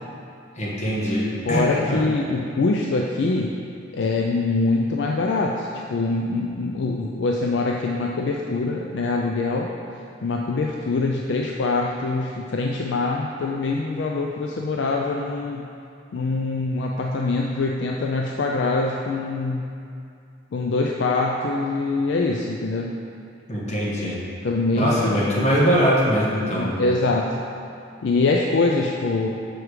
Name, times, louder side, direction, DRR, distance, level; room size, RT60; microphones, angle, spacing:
voice 1, 0.6-2.0 23.5-24.2 24.7-26.7, equal, 35° left, -6 dB, 1.3 m, -22 dB
voice 2, 1.5-3.5 3.9-9.7 10.2-15.6 16.1-19.7 20.5-23.0 24.4-25.2 26.5-27.3 28.0-29.3, left 3 dB, 65° left, 0 dB, 0.4 m, -24 dB
6.2 x 4.8 x 4.7 m, 2.5 s
head